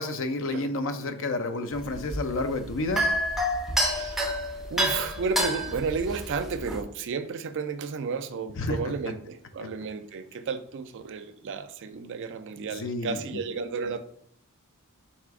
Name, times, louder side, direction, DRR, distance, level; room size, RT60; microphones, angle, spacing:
voice 1, 0.0-3.0 8.6-8.8 12.7-13.4, left 2 dB, 60° left, 8 dB, 0.5 m, -30 dB
sound 1, 1.7-6.8, equal, ahead, 0.6 m, -28 dB
voice 2, 3.8-4.2 4.7-14.0, right 5 dB, 60° right, 11 dB, 0.4 m, -32 dB
4.2 x 2.5 x 4.6 m, 0.65 s
head